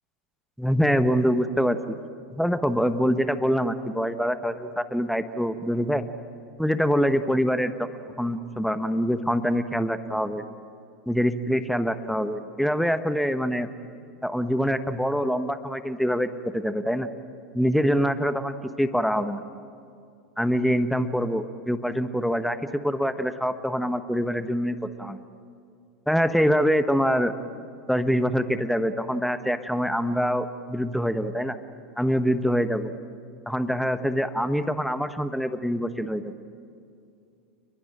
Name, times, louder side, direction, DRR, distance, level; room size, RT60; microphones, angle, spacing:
voice 1, 0.6-1.8 2.3-6.0 6.6-7.9 8.2-10.4 11.1-13.7 14.2-16.3 16.5-17.1 17.5-19.4 20.4-25.2 26.1-27.3 27.9-31.6 32.0-32.9 33.5-36.3, equal, ahead, 10 dB, 1.2 m, -25 dB
30.0 x 21.5 x 8.9 m, 2.5 s
figure-of-eight pair, 90°, 7 cm